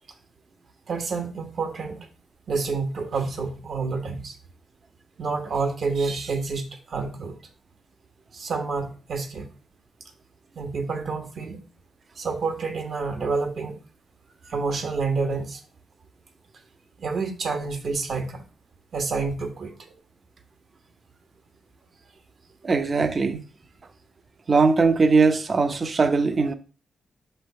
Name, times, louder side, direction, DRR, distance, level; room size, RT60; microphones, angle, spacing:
voice 1, 0.9-2.1 2.5-4.3 5.2-7.4 8.3-9.5 10.6-11.6 12.2-13.7 14.4-15.6 17.0-18.4 18.9-19.7, right 4 dB, 65° right, 1.2 m, -28 dB
voice 2, 22.6-23.4 24.5-26.5, right 4 dB, 40° right, 0.7 m, -20 dB
5.7 x 3.3 x 5.5 m
cardioid pair, 70°, 0 cm